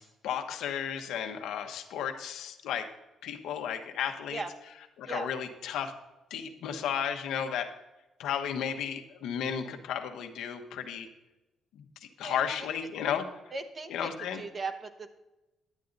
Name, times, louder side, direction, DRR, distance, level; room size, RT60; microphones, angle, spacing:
voice 1, 0.2-2.9 3.2-4.4 5.0-5.9 6.3-7.7 8.2-11.1 12.2-13.2 13.9-14.4, left 8 dB, 85° left, 6 dB, 1.0 m, -33 dB
voice 2, 12.2-12.7 13.5-15.2, right 3 dB, 35° right, 7 dB, 1.0 m, -38 dB
11.0 x 8.4 x 3.9 m, 1.0 s
cardioid pair, 90°, 0 cm